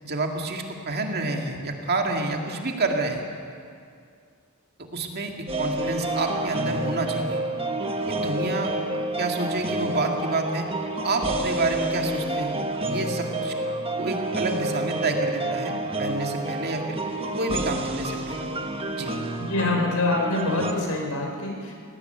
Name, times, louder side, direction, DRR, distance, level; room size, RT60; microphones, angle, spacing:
voice 1, 0.0-3.2 4.9-7.4 8.1-8.7 9.2-10.7 11.0-12.6 12.8-13.5 14.0-17.0 17.4-18.5 18.9-19.1, right 2 dB, 45° right, 2 dB, 2.2 m, -28 dB
sound 1, 5.5-20.7, right 2 dB, 25° right, 1.4 m, -29 dB
voice 2, 19.4-21.7, left 2 dB, 80° left, 1 dB, 4.4 m, -25 dB
18.5 x 17.5 x 9.2 m, 2.3 s
head